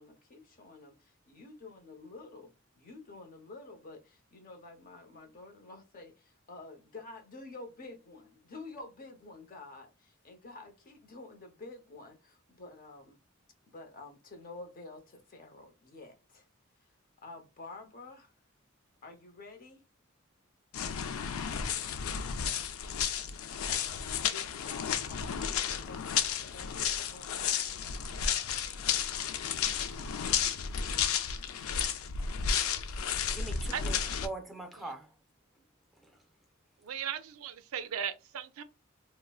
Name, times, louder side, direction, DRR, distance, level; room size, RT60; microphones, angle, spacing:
voice 1, 0.0-13.2 13.7-16.5 17.2-18.3 19.0-19.8 24.3-27.9, left 3 dB, 45° left, 0.7 m, -50 dB
sound 1, 20.7-34.3, left 7 dB, 85° left, 0.4 m, -32 dB
voice 2, 33.3-35.2 35.5-35.6 35.9-36.2, right 2 dB, ahead, 0.5 m, -43 dB
voice 3, 36.8-38.6, right 8 dB, 90° right, 0.4 m, -37 dB
3.7 x 2.0 x 2.3 m
head